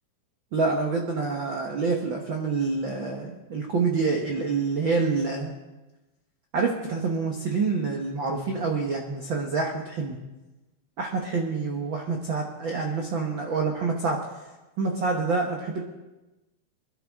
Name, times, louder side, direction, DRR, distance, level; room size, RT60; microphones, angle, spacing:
voice 1, 0.5-5.5 6.5-10.2 11.0-14.2 14.8-15.8, right 4 dB, 90° right, 1 dB, 1.0 m, -27 dB
22.5 x 12.0 x 3.6 m, 1.1 s
omnidirectional pair, 4.2 m